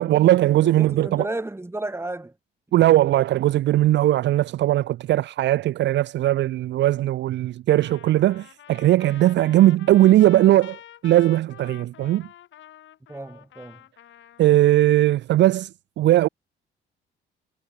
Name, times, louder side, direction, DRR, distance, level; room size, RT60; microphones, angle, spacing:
voice 1, 0.0-1.3 2.7-12.3 14.4-15.7 16.0-16.3, right 14 dB, 65° right, 0.4 m, -19 dB
voice 2, 0.6-2.4 13.1-13.8, right 2 dB, 10° right, 4.0 m, -33 dB
Trumpet, 7.8-14.8, left 12 dB, 75° left, 5.1 m, -47 dB
cardioid pair, 90°, 20 cm